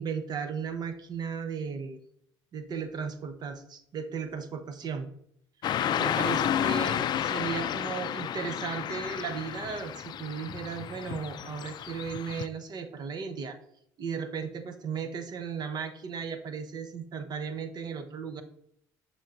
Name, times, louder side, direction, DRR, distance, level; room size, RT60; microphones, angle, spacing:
voice 1, 0.0-2.0 2.5-5.1 6.0-13.6 14.0-18.4, right 6 dB, 45° right, 9 dB, 0.9 m, -36 dB
Car passing by / Traffic noise roadway noise, 5.6-12.5, left 10 dB, 50° left, 0.4 m, -31 dB
6.6 x 6.0 x 2.6 m, 0.71 s
supercardioid pair, 85°, 10 cm